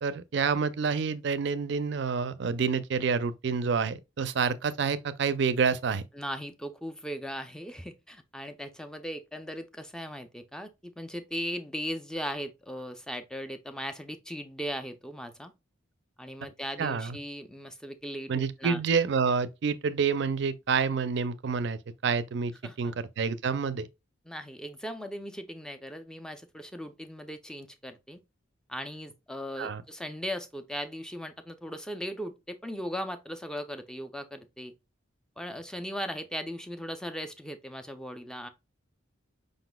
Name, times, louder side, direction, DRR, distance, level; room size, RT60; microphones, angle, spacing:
voice 1, 0.0-6.0 16.8-17.2 18.3-23.9 29.6-29.8, right 5 dB, 60° right, 0.4 m, -28 dB
voice 2, 6.1-15.5 16.2-18.8 22.6-22.9 24.3-28.2 28.7-34.7 35.4-38.5, equal, 5° left, 0.4 m, -38 dB
5.1 x 3.9 x 2.2 m
head